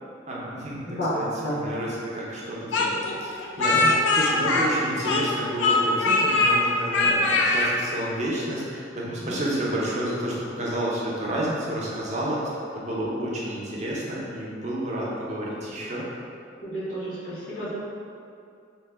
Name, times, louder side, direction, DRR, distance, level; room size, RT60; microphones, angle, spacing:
voice 1, 0.3-0.8 1.1-1.3 1.5-12.4 12.8-16.0, right 1 dB, 35° right, -5 dB, 0.5 m, -30 dB
voice 2, 0.9-1.6 3.8-3.9 9.2-9.3 16.6-17.7, equal, 80° left, -10 dB, 1.0 m, -30 dB
Speech, 2.7-5.3 5.6-6.6 6.9-7.7, left 2 dB, 65° left, 0.3 m, -21 dB
2.8 x 2.1 x 3.3 m, 2.5 s
head